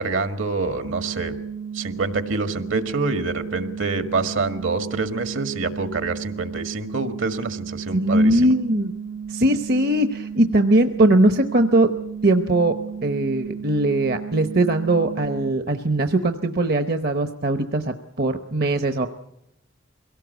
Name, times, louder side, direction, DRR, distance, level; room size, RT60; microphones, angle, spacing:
voice 1, 0.0-1.3 1.7-8.5, right 3 dB, 70° right, 9 dB, 1.8 m, -26 dB
sound 1, 0.8-15.5, right 6 dB, 90° right, 0.9 m, -34 dB
voice 2, 7.9-8.9 9.3-11.9 12.2-12.7 13.0-19.1, right 1 dB, 50° right, 8 dB, 0.9 m, -20 dB
23.0 x 17.5 x 8.1 m, 0.83 s
head